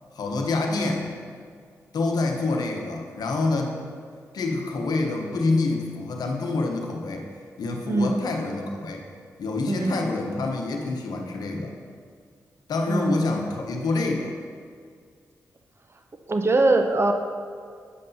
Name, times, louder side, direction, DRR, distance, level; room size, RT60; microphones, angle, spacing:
voice 1, 0.1-1.1 1.9-3.8 4.3-7.2 7.6-9.0 9.4-11.7 12.7-14.3, left 3 dB, 75° left, 2 dB, 0.9 m, -27 dB
voice 2, 7.9-8.2 9.7-10.0 12.9-13.3 16.3-17.1, right 2 dB, 40° right, 5 dB, 0.7 m, -22 dB
8.3 x 7.5 x 2.7 m, 2.1 s
supercardioid pair, 45°, 7 cm